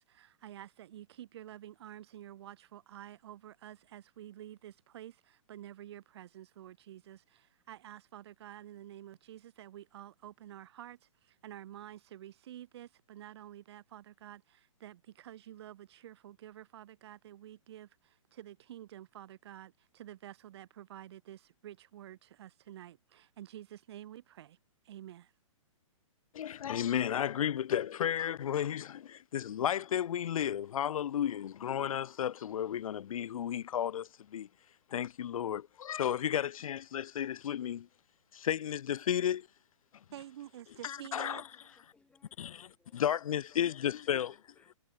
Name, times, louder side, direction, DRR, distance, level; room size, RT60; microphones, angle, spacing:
voice 1, 0.0-24.6 24.8-25.3 40.1-41.4, right 12 dB, 50° right, 2.8 m, -50 dB
voice 2, 26.3-34.5 34.9-37.9 38.3-39.5 40.8-41.4 42.4-42.7 42.9-44.3, left 10 dB, 80° left, 0.5 m, -33 dB
voice 3, 41.2-43.0 43.5-44.8, left 4 dB, 5° left, 5.6 m, -68 dB
hypercardioid pair, 155°, 18 cm